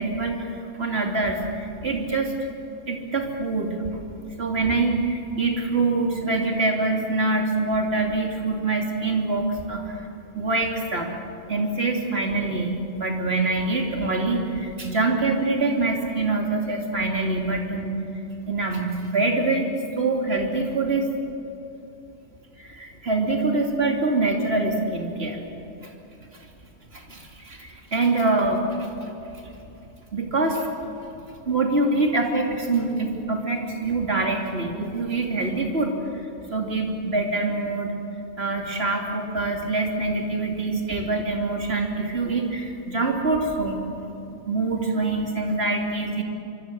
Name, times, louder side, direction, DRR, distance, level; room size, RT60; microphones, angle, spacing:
voice 1, 0.0-2.5 2.9-4.0 4.4-10.0 10.3-11.1 11.5-18.0 18.5-19.7 20.0-21.0 22.6-25.4 25.8-25.9 26.9-29.5 30.1-30.7 31.1-31.2 31.5-38.0 38.4-43.8 44.1-44.2 44.5-46.2, right 3 dB, 55° right, 1 dB, 3.2 m, -25 dB
25.0 x 24.0 x 7.7 m, 2.9 s
omnidirectional pair, 1.3 m